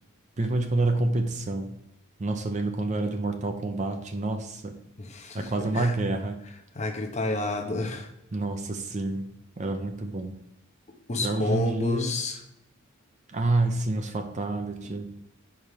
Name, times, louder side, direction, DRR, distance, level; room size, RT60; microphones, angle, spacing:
voice 1, 0.4-1.7 2.2-4.8 5.3-6.4 8.3-9.3 9.6-10.4 11.2-12.2 13.3-15.1, right 2 dB, 35° right, 6 dB, 0.5 m, -28 dB
voice 2, 5.0-5.9 6.7-8.1 11.1-12.4, left 2 dB, 30° left, 4 dB, 0.7 m, -30 dB
4.9 x 4.3 x 5.2 m, 0.83 s
head